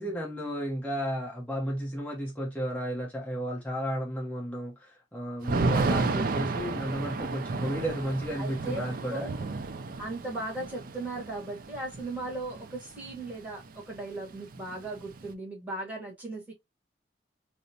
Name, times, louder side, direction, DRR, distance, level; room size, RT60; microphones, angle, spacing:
voice 1, 0.0-9.3, equal, 10° left, 0.8 m, -33 dB
Thunder / Rain, 5.4-13.3 13.6-13.7 14.0-15.3, right 3 dB, 50° right, 0.4 m, -32 dB
voice 2, 8.4-9.4 10.0-16.5, right 2 dB, 10° right, 1.3 m, -37 dB
4.8 x 2.0 x 2.7 m
head